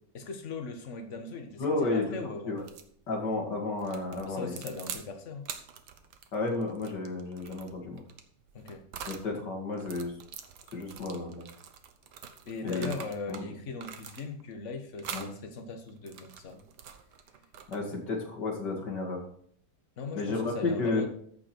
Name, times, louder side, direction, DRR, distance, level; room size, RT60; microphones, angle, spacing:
voice 1, 0.1-2.6 4.2-5.5 8.5-8.8 12.4-16.7 20.0-21.1, left 4 dB, 45° left, 1.5 m, -39 dB
voice 2, 1.6-2.0 2.5-2.6 3.1-4.5 6.3-8.0 9.1-10.1 10.7-11.5 12.6-12.9 13.3-13.4 15.1-15.3 17.7-19.2 20.2-21.1, left 3 dB, 90° left, 2.9 m, -32 dB
sound 1, 2.6-2.9 3.8-5.1 5.4-9.3 9.7-13.4 13.8-14.5 15.0-15.3 15.9-18.0, right 7 dB, 75° right, 1.5 m, -45 dB
14.0 x 5.2 x 4.5 m
omnidirectional pair, 1.8 m